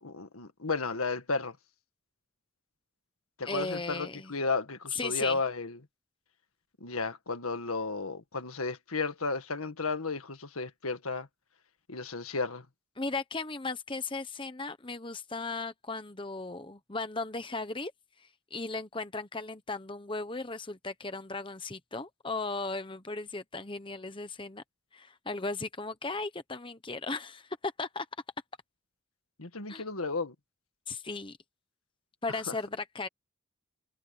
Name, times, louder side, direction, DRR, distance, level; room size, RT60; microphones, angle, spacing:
voice 1, 0.0-1.6 3.4-5.8 6.8-11.3 11.9-12.7 29.4-30.3 32.5-32.6, left 3 dB, 85° left, 1.8 m, -33 dB
voice 2, 3.4-4.3 4.9-5.4 13.0-17.9 18.5-24.6 24.9-28.1 29.7-29.8 30.9-31.4 32.2-33.1, left 3 dB, 25° left, 1.0 m, -36 dB
head